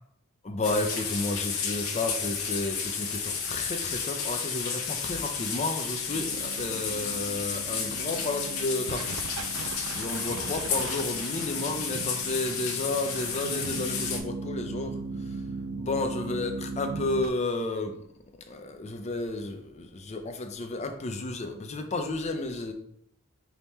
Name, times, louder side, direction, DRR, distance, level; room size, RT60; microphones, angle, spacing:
voice 1, 0.4-9.2 9.6-15.0 15.3-15.4 15.8-18.0 18.5-22.7, left 2 dB, 30° left, 6 dB, 0.5 m, -32 dB
sound 1, 0.6-14.2, left 6 dB, 90° left, 0.8 m, -32 dB
sound 2, 6.1-17.3, right 4 dB, 80° right, 0.3 m, -38 dB
3.5 x 2.9 x 4.1 m, 0.69 s
head